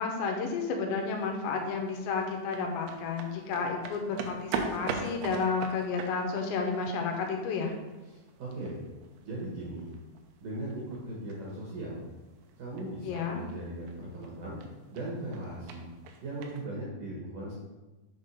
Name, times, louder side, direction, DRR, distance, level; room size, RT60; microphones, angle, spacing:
voice 1, 0.0-7.7 13.0-13.4, left 4 dB, 80° left, 2 dB, 3.1 m, -31 dB
sound 1, 1.0-16.7, right 5 dB, 85° right, 3.0 m, -43 dB
voice 2, 8.1-8.8 9.2-9.9 10.4-12.0 12.6-14.6 14.9-15.8 16.2-17.5, right 1 dB, 60° right, -5 dB, 2.5 m, -38 dB
7.3 x 3.7 x 5.4 m, 1.2 s
omnidirectional pair, 5.2 m